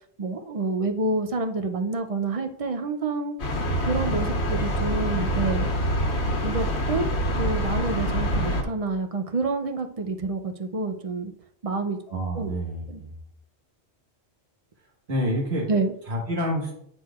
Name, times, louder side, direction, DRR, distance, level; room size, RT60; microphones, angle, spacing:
voice 1, 0.2-3.4 3.9-5.7 6.4-7.1 7.4-11.3 11.6-12.0 12.4-12.5 12.9-13.0 15.7-15.9, right 3 dB, 45° right, 7 dB, 0.5 m, -28 dB
sound 1, 3.4-8.6, equal, 80° left, 1.3 m, -25 dB
voice 2, 12.1-13.1 15.1-15.7 16.1-16.8, equal, 70° right, -2 dB, 1.7 m, -28 dB
7.9 x 6.1 x 2.4 m, 0.71 s
omnidirectional pair, 1.1 m